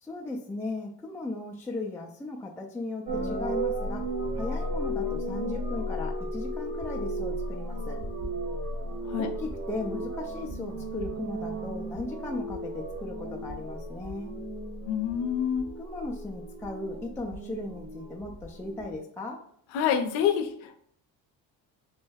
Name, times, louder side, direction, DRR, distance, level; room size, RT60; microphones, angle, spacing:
voice 1, 0.0-4.1 4.3-8.0 9.2-14.3 15.8-19.4, left 2 dB, 5° left, -1 dB, 0.4 m, -37 dB
sound 1, 3.1-19.0, right 1 dB, 40° right, 1.3 m, -34 dB
voice 2, 14.9-15.6 19.7-20.8, left 8 dB, 75° left, 7 dB, 0.6 m, -27 dB
3.2 x 2.2 x 3.3 m, 0.66 s
hypercardioid pair, 65°, 46 cm